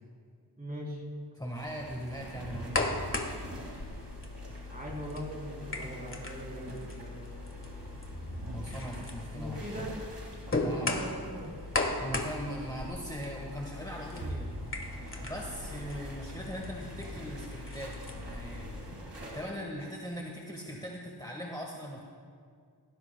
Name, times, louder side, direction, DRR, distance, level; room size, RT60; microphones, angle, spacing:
voice 1, 0.6-1.0 4.7-7.6 9.3-9.9 10.6-11.5, equal, 20° right, -3 dB, 3.7 m, -41 dB
voice 2, 1.3-3.1 8.5-9.8 10.6-10.9 12.0-14.5 15.2-17.9 18.2-18.7 19.1-22.0, equal, 10° left, -2 dB, 1.4 m, -40 dB
sound 1, 1.5-19.4, right 1 dB, 90° right, 2.3 m, -45 dB
sound 2, 2.4-18.9, left 2 dB, 30° left, 1.5 m, -38 dB
18.0 x 15.5 x 2.2 m, 2.2 s
wide cardioid pair, 45°, 40 cm